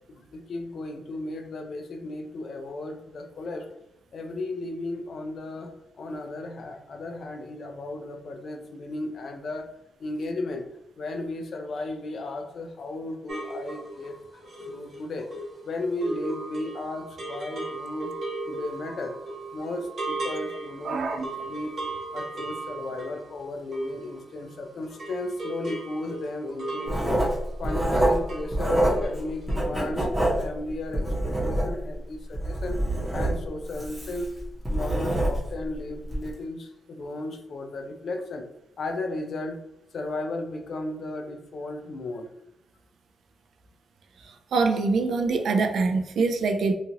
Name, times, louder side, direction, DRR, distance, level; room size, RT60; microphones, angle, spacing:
voice 1, 0.1-3.7 4.1-9.7 10.0-10.7 11.0-14.2 14.7-15.3 15.6-18.1 18.5-19.2 19.5-21.7 22.1-27.2 27.6-30.1 30.4-32.8 33.1-34.3 34.7-38.5 38.8-39.6 39.9-42.3, left 2 dB, 55° left, 5 dB, 0.4 m, -34 dB
sound 1, 13.3-24.6 24.8-28.6 28.8-29.2 29.5-29.6, right 2 dB, 50° right, 0.9 m, -37 dB
voice 2, 20.8-21.3 44.5-46.7, right 4 dB, 70° right, 5 dB, 0.3 m, -24 dB
Writing, 26.9-29.2 29.5-31.9 32.3-35.6 36.0-36.3, right 1 dB, 5° right, 0.8 m, -26 dB
2.9 x 2.4 x 2.7 m, 0.83 s
wide cardioid pair, 160°, 0 cm